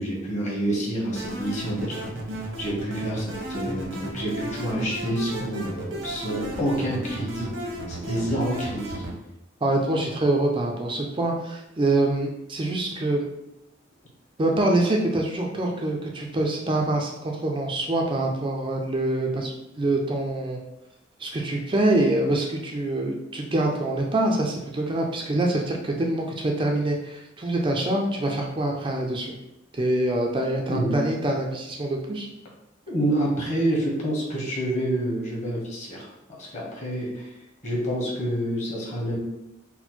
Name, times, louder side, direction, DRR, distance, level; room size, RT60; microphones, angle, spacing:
voice 1, 0.0-2.1 2.6-7.5 7.9-9.0 30.7-30.9 32.9-36.1 36.4-37.3 37.6-39.2, right 1 dB, 35° left, -4 dB, 1.2 m, -28 dB
sound 1, 1.2-9.1, right 1 dB, 85° right, 1.0 m, -34 dB
voice 2, 9.6-13.3 14.4-20.6 21.2-29.3 29.7-32.3, right 2 dB, 25° right, 0 dB, 0.4 m, -25 dB
4.2 x 2.1 x 4.3 m, 0.87 s
head